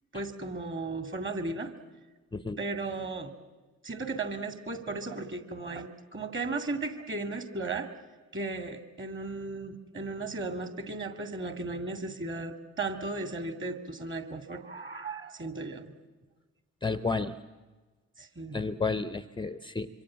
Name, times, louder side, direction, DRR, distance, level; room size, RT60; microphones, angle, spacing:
voice 1, 0.1-1.7 2.6-3.3 3.8-7.9 8.3-15.9 18.2-18.6, right 3 dB, 30° right, 8 dB, 2.4 m, -35 dB
voice 2, 16.8-17.3 18.5-19.9, left 4 dB, 10° left, 15 dB, 0.7 m, -31 dB
26.0 x 24.5 x 7.5 m, 1.3 s
figure-of-eight pair, 40°, 38 cm